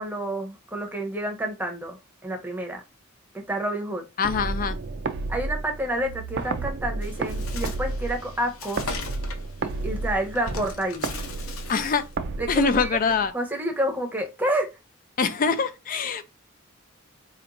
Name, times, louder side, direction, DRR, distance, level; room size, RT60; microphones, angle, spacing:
voice 1, 0.0-2.8 3.3-4.0 5.3-8.9 9.6-11.1 12.4-12.9 13.3-14.7, right 1 dB, 10° right, 0.8 m, -29 dB
voice 2, 4.2-4.8 11.7-12.0 12.5-13.3 15.2-16.2, left 5 dB, 40° left, 0.4 m, -24 dB
sound 1, 4.2-13.3, right 3 dB, 55° right, 0.5 m, -32 dB
Bird, 7.0-12.1, left 5 dB, 85° left, 0.8 m, -40 dB
4.3 x 2.9 x 2.6 m
head